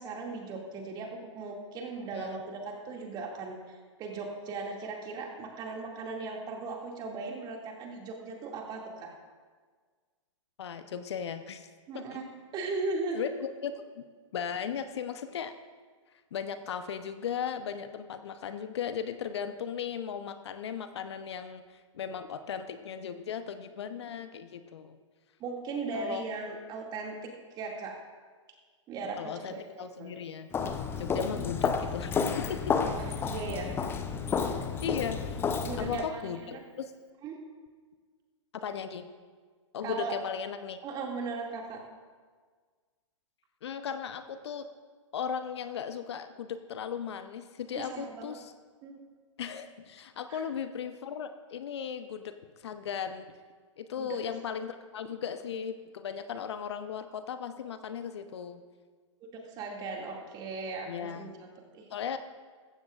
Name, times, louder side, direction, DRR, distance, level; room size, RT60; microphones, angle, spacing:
voice 1, 0.0-9.1 11.9-12.2 12.5-13.2 25.4-27.1 27.6-28.0 28.9-30.2 31.3-31.5 32.8-33.8 35.6-36.6 37.2-37.5 39.8-40.2 40.8-41.8 47.7-48.3 48.8-49.0 50.3-50.4 54.0-54.2 59.3-61.3 61.7-61.9, right 3 dB, 25° right, 0 dB, 2.3 m, -38 dB
voice 2, 10.6-11.7 11.9-12.2 13.1-14.0 14.3-15.6 16.3-21.6 21.9-25.0 25.9-26.2 29.2-30.5 31.0-32.7 34.8-35.4 35.8-36.9 38.5-39.1 39.7-40.8 43.6-44.7 45.1-48.5 49.4-52.4 52.6-53.3 53.8-58.6 60.9-61.3 61.9-62.2, left 7 dB, 60° left, 10 dB, 0.8 m, -37 dB
Walk footsteps, 30.5-36.1, left 6 dB, 15° left, 0.7 m, -31 dB
15.0 x 14.5 x 2.5 m, 1.5 s
figure-of-eight pair, 120°, 16 cm